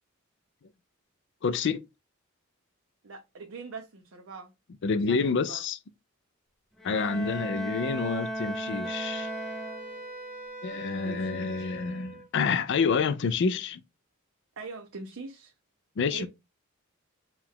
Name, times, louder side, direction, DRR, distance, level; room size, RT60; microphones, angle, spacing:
voice 1, 1.4-1.9 4.8-5.8 6.8-9.3 10.6-13.8 16.0-16.3, left 5 dB, 60° left, 0.4 m, -28 dB
voice 2, 3.0-4.5 5.1-5.6 6.9-7.2 11.0-11.8 14.6-15.5 16.1-16.3, right 4 dB, 70° right, 0.7 m, -42 dB
Bowed string instrument, 6.8-10.2, right 1 dB, ahead, 0.6 m, -35 dB
Wind instrument woodwind instrument, 8.8-12.3, right 2 dB, 40° right, 1.3 m, -42 dB
4.7 x 2.4 x 3.5 m
head